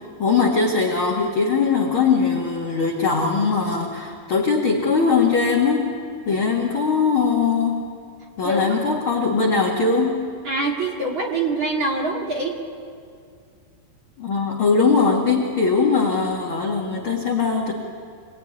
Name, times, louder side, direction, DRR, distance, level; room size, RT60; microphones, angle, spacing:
voice 1, 0.2-6.0 6.3-7.9 8.4-10.2 14.2-17.7, left 5 dB, 40° left, -1 dB, 2.0 m, -20 dB
voice 2, 8.4-8.8 10.4-12.6, right 2 dB, 35° right, -1 dB, 2.3 m, -24 dB
27.0 x 19.0 x 9.8 m, 2.2 s
omnidirectional pair, 4.9 m